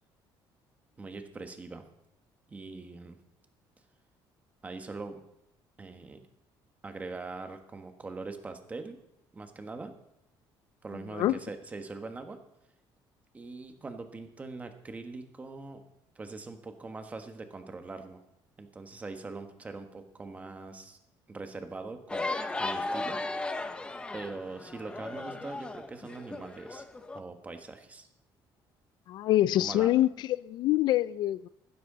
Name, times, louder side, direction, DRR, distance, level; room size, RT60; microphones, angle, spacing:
voice 1, 1.0-1.9 2.5-3.2 4.6-5.2 5.8-6.2 6.8-9.0 9.3-9.9 10.8-12.4 13.3-15.8 16.1-18.2 18.6-21.0 21.3-22.3 22.6-23.2 24.1-26.8 27.1-28.1 29.6-29.9, right 3 dB, 15° right, 1.4 m, -42 dB
sound 1, 22.1-27.2, left 2 dB, 10° left, 0.7 m, -36 dB
voice 2, 29.1-30.1 30.4-31.5, left 14 dB, 55° left, 0.3 m, -25 dB
15.0 x 13.0 x 3.9 m
cardioid pair, 170°, 9 cm